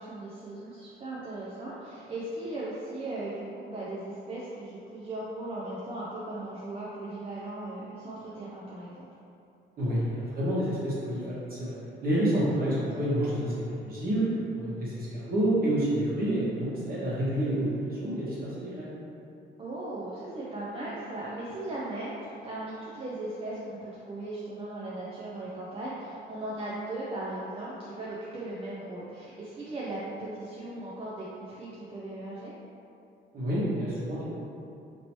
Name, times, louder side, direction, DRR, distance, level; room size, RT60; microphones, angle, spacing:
voice 1, 0.0-9.1 19.6-32.5, right 2 dB, 30° right, -8 dB, 0.5 m, -38 dB
voice 2, 9.8-11.7 12.0-18.9 33.3-34.2, right 1 dB, 50° right, -8 dB, 1.3 m, -28 dB
3.0 x 2.8 x 3.0 m, 2.6 s
cardioid pair, 90°, 20 cm